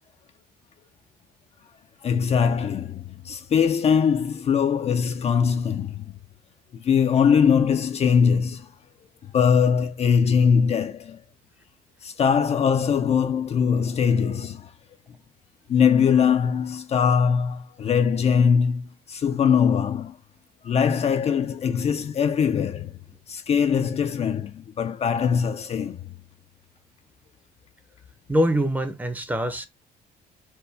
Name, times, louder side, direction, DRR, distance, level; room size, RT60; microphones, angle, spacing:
voice 1, 2.0-6.1 6.7-8.7 9.3-11.2 12.0-14.7 15.7-20.2 20.6-22.9 23.3-26.0, left 7 dB, 40° left, 0.4 m, -21 dB
voice 2, 28.3-29.7, equal, 10° right, 0.7 m, -23 dB
4.4 x 2.2 x 3.3 m
cardioid pair, 110°, 17 cm